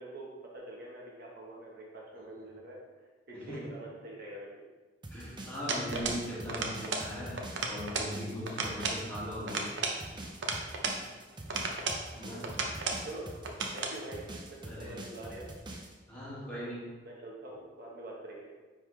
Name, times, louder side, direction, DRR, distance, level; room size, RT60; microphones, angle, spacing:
voice 1, 0.0-2.8 3.3-4.7 9.5-9.6 12.2-15.5 16.5-16.7 17.0-18.5, right 1 dB, 55° right, -3 dB, 1.2 m, -45 dB
sound 1, 5.0-15.9, right 1 dB, 25° right, 0.8 m, -45 dB
voice 2, 5.1-7.4 7.7-9.7 12.1-12.5 14.7-14.9 16.1-16.8, equal, 10° left, -9 dB, 2.1 m, -39 dB
sound 2, 5.7-6.2 6.5-7.1 7.4-8.1 8.5-9.0 9.5-11.0 11.5-12.0 12.4-13.0 13.4-14.0, right 3 dB, 75° right, 0.8 m, -34 dB
9.6 x 3.7 x 3.3 m, 1.3 s
head